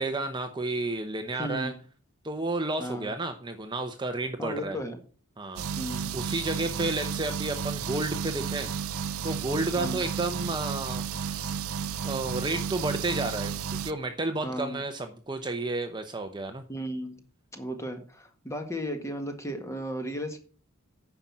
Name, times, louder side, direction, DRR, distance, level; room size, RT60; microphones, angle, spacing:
voice 1, 0.0-1.7 2.2-4.8 5.4-8.7 9.2-11.6 12.0-16.6, right 2 dB, 20° right, 6 dB, 0.8 m, -32 dB
voice 2, 1.3-1.8 2.8-3.1 4.4-5.0 5.8-6.1 9.8-10.0 14.4-14.8 16.7-17.2 17.5-20.4, equal, 15° left, 6 dB, 1.7 m, -35 dB
sound 1, 5.6-13.9, right 7 dB, 70° right, 0.5 m, -33 dB
9.5 x 5.9 x 7.4 m, 0.40 s
head